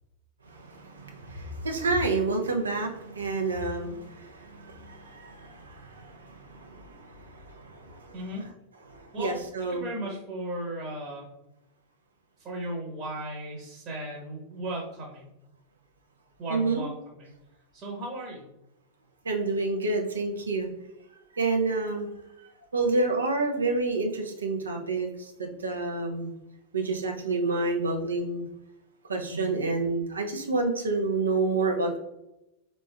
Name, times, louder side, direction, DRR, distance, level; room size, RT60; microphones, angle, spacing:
voice 1, 0.5-8.1 8.9-9.8 16.5-16.8 19.2-20.7 21.3-22.1 22.7-26.3 26.7-28.4 29.1-32.0, right 3 dB, 75° right, 2 dB, 0.6 m, -29 dB
voice 2, 8.1-8.4 9.1-11.3 12.4-15.3 16.4-17.3 17.7-18.5 29.3-29.6, right 1 dB, 30° right, -3 dB, 1.0 m, -36 dB
4.2 x 3.1 x 2.2 m, 0.90 s
figure-of-eight pair, 90°, 0 cm